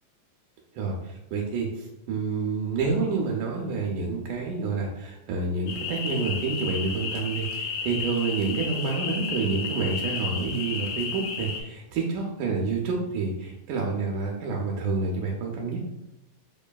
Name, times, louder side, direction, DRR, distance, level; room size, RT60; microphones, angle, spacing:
voice 1, 0.8-15.8, right 4 dB, 80° right, -1 dB, 2.0 m, -28 dB
sound 1, 5.7-11.6, left 5 dB, 80° left, 2.2 m, -33 dB
7.2 x 3.0 x 2.2 m, 0.89 s
omnidirectional pair, 3.7 m